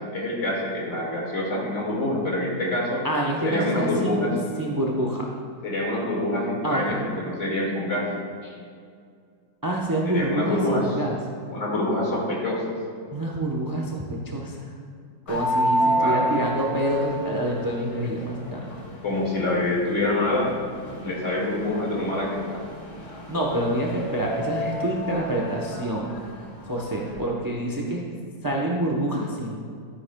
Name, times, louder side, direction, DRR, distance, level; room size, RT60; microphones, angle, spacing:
voice 1, 0.1-3.0 3.4-4.4 5.6-8.1 8.4-8.5 10.0-10.9 11.5-12.6 15.9-16.3 19.0-20.5 20.9-22.6, left 1 dB, 45° left, -3 dB, 2.3 m, -26 dB
voice 2, 3.0-4.3 4.6-5.3 6.6-7.0 9.6-11.2 13.1-14.6 15.3-18.7 23.3-26.1 26.6-28.0 28.4-29.6, right 1 dB, 25° right, -1 dB, 0.4 m, -27 dB
sound 1, 15.3-27.2, equal, 60° left, 2.1 m, -30 dB
12.5 x 9.5 x 2.3 m, 2.2 s
omnidirectional pair, 1.9 m